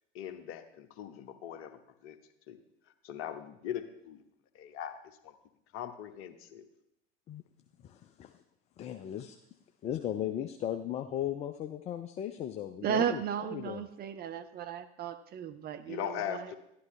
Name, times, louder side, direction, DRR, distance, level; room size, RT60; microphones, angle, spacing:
voice 1, 0.1-2.2 2.5-2.6 3.0-4.2 4.5-5.3 5.7-6.7 15.9-16.6, left 10 dB, 40° left, 9 dB, 1.0 m, -40 dB
voice 2, 7.8-8.4 8.8-9.4 9.8-13.8, left 10 dB, 20° left, 9 dB, 0.4 m, -37 dB
voice 3, 12.8-16.5, right 8 dB, 30° right, 9 dB, 0.6 m, -35 dB
12.0 x 11.0 x 3.2 m, 0.80 s
figure-of-eight pair, 75°, 33 cm